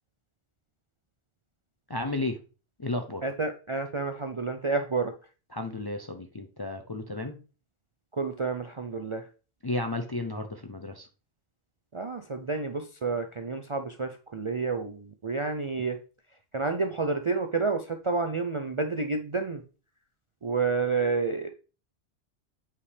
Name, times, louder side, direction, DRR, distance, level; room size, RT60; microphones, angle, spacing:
voice 1, 1.9-2.4 2.8-3.2 5.5-7.4 9.6-11.1, left 2 dB, 30° left, 5 dB, 0.4 m, -33 dB
voice 2, 3.2-5.1 8.1-9.2 11.9-16.0 16.5-19.6 20.4-21.5, right 4 dB, 45° right, 6 dB, 0.4 m, -29 dB
8.3 x 4.8 x 3.3 m, 0.35 s
omnidirectional pair, 1.1 m